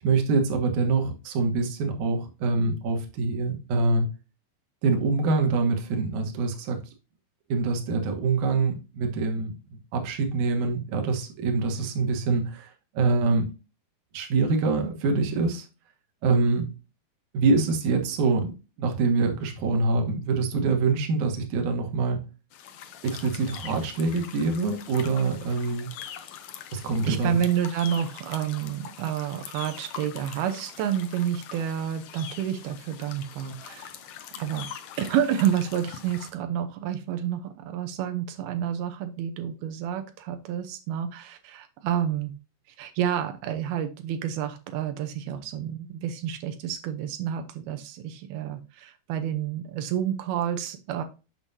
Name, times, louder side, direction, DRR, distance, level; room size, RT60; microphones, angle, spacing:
voice 1, 0.0-4.1 4.8-6.8 7.5-13.5 14.1-15.7 16.2-16.7 17.3-18.5 18.8-22.2 23.0-25.9 26.7-27.4, right 3 dB, 60° right, 2.5 m, -25 dB
sound 1, 22.5-36.3, left 9 dB, 75° left, 1.7 m, -43 dB
voice 2, 27.1-34.7 35.0-42.3 42.8-51.0, right 10 dB, 85° right, 2.8 m, -29 dB
7.5 x 6.3 x 2.7 m
omnidirectional pair, 4.3 m